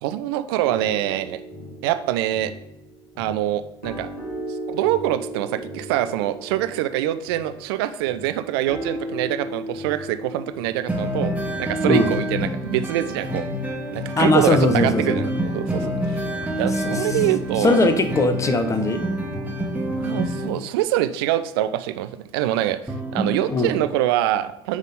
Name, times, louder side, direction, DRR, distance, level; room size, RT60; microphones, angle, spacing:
voice 1, 0.0-1.4 1.8-2.5 3.2-4.1 4.5-11.3 11.6-13.5 13.9-16.3 16.5-17.8 20.0-24.8, right 13 dB, 65° right, 11 dB, 0.5 m, -25 dB
sound 1, 0.6-12.2, equal, 50° left, 2.6 m, -37 dB
sound 2, 10.9-20.5 22.9-23.6, equal, 10° right, 1.6 m, -27 dB
voice 2, 14.2-15.3 15.8-15.9 17.6-19.0 23.5-23.7, left 2 dB, 20° left, 10 dB, 0.8 m, -20 dB
9.3 x 3.7 x 3.7 m, 0.85 s
figure-of-eight pair, 65°, 14 cm